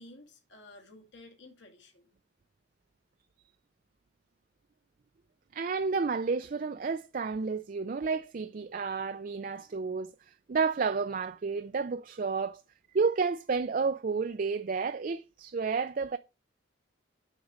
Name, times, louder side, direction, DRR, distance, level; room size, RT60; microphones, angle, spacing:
voice 1, 0.0-2.1, left 2 dB, 65° left, 2.3 m, -53 dB
voice 2, 5.5-12.6 12.9-16.2, right 5 dB, 45° right, 0.4 m, -31 dB
8.1 x 5.1 x 6.1 m
head